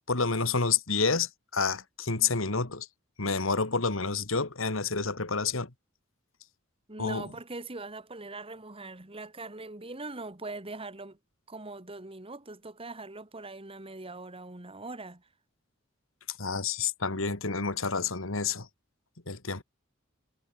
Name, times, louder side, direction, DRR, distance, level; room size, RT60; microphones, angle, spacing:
voice 1, 0.1-2.9 3.2-5.7 7.0-7.3 16.4-18.7 19.3-19.6, left 4 dB, 70° left, 2.3 m, -29 dB
voice 2, 6.9-11.2 11.5-15.3, right 2 dB, 25° right, 2.3 m, -41 dB
head